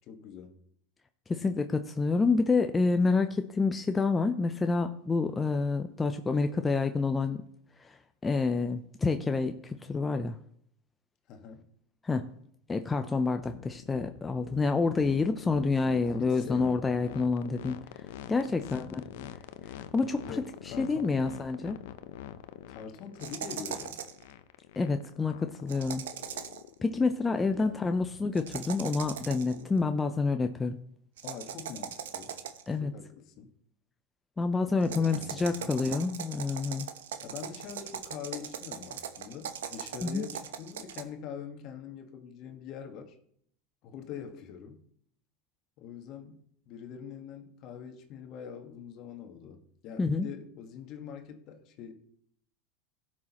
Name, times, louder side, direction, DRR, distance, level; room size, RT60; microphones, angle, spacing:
voice 1, 0.1-0.6 11.3-11.6 15.8-16.8 18.7-19.1 20.2-21.2 22.7-24.0 27.5-27.9 31.2-32.4 32.8-33.5 34.9-35.8 37.2-43.2 43.8-44.8 45.8-51.9, left 7 dB, 50° left, 6 dB, 1.5 m, -44 dB
voice 2, 1.3-7.4 7.8-10.4 12.0-12.3 12.7-17.8 18.3-19.0 19.9-20.3 20.6-21.8 24.8-26.0 26.8-30.8 32.7-32.9 34.4-36.9 40.0-40.2 50.0-50.3, left 4 dB, 15° left, 7 dB, 0.6 m, -28 dB
sound 1, 13.4-29.9, left 11 dB, 70° left, 0.6 m, -46 dB
sound 2, 23.2-24.2 25.7-26.7 28.3-29.6 31.2-32.7 34.8-41.0, right 9 dB, 80° right, 0.9 m, -40 dB
16.5 x 6.3 x 3.0 m, 0.68 s
hypercardioid pair, 95°, 0 cm